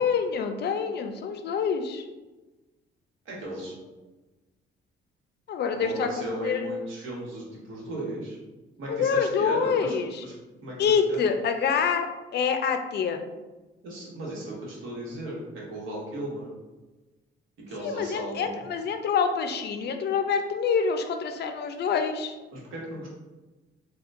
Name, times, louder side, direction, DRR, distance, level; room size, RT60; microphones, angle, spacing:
voice 1, 0.0-2.0 5.5-6.7 8.9-10.2 10.8-13.2 17.8-22.3, left 6 dB, 55° left, 6 dB, 0.4 m, -26 dB
voice 2, 3.2-3.7 5.7-8.4 8.8-9.9 10.2-10.3 10.6-10.8 11.1-11.2 13.8-16.5 17.7-18.6 22.5-23.1, right 1 dB, 85° right, -4 dB, 1.1 m, -36 dB
4.3 x 2.2 x 2.5 m, 1.2 s
cardioid pair, 90°, 20 cm